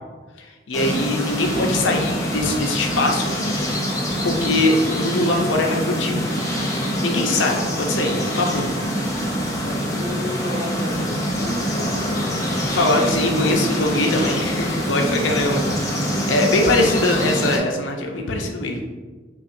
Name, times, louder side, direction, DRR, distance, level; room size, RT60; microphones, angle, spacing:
voice 1, 0.4-3.3 4.2-6.3 7.0-8.7 12.7-15.6 15.9-18.9, left 2 dB, 85° left, 2 dB, 0.6 m, -22 dB
sound 1, 0.7-17.6, equal, 15° left, 0.5 m, -24 dB
voice 2, 9.6-12.3 15.1-15.5, left 1 dB, 55° right, -1 dB, 0.8 m, -32 dB
5.6 x 2.4 x 2.5 m, 1.3 s
head